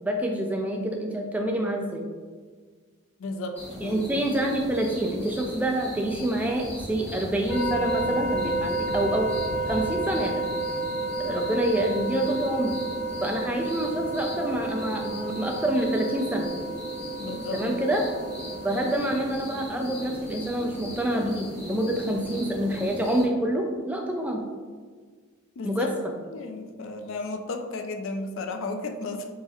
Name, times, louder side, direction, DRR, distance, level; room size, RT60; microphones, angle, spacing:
voice 1, 0.0-2.0 3.8-9.3 9.7-10.5 11.2-12.7 13.2-16.5 17.5-18.0 18.6-24.5 25.6-25.9, right 1 dB, 5° right, 1 dB, 0.3 m, -27 dB
voice 2, 3.2-4.2 17.1-17.6 25.6-25.9 26.3-29.3, left 3 dB, 65° left, 5 dB, 0.4 m, -34 dB
sound 1, 3.5-23.3, equal, 10° left, 1.4 m, -38 dB
sound 2, 7.5-18.9, right 2 dB, 35° left, 0.9 m, -31 dB
4.0 x 3.8 x 3.0 m, 1.6 s
head